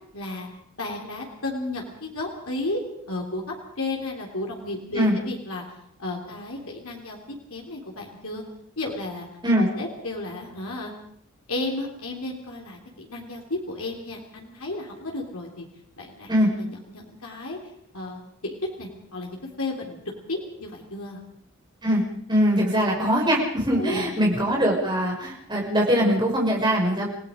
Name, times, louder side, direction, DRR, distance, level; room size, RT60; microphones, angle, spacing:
voice 1, 0.1-0.5 0.8-2.8 3.1-5.6 6.0-7.2 7.5-8.4 8.8-9.3 9.5-10.9 11.5-15.7 16.0-16.3 16.6-17.6 17.9-18.2 18.8-20.0 20.3-21.2 23.7-24.1, left 2 dB, 90° left, 0 dB, 3.4 m, -33 dB
voice 2, 22.3-27.1, equal, 20° right, -2 dB, 5.7 m, -22 dB
29.0 x 17.5 x 5.2 m, 0.68 s
head